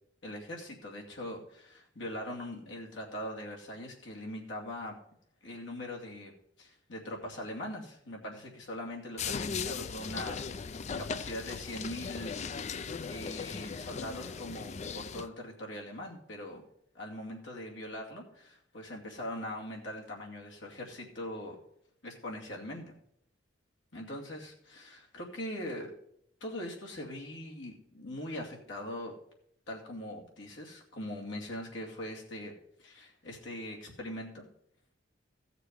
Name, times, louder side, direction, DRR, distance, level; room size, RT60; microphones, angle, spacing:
voice 1, 0.2-4.9 5.4-6.3 6.6-10.7 11.0-16.6 16.9-21.6 22.0-23.0 23.9-25.9 26.4-29.1 29.7-32.5 32.8-34.5, left 1 dB, 70° left, -1 dB, 2.4 m, -41 dB
sound 1, 9.2-15.3, left 5 dB, 35° left, 0.4 m, -38 dB
15.0 x 6.8 x 4.7 m, 0.72 s
head